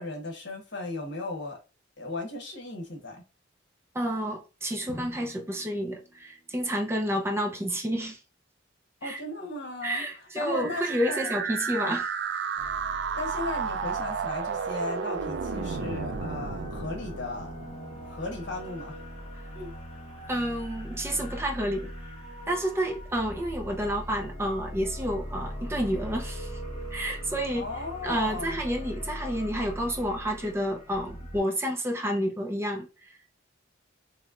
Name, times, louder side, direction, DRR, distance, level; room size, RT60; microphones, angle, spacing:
voice 1, 0.0-1.6 2.0-3.2 9.0-10.0 10.3-11.4 11.8-12.0 13.2-17.5 18.1-19.0 19.5-19.7 27.5-28.6, left 2 dB, 60° left, 1.2 m, -36 dB
voice 2, 3.9-8.2 9.0-9.2 9.8-12.1 20.3-21.9 22.5-26.6 26.9-27.7 28.0-33.1, equal, 15° right, 0.6 m, -30 dB
Drum, 4.9-6.9, equal, 10° left, 1.2 m, -47 dB
sound 1, 10.4-18.3, right 6 dB, 60° right, 0.4 m, -33 dB
sound 2, 12.6-31.4, equal, 30° left, 1.2 m, -40 dB
4.1 x 3.1 x 2.4 m
head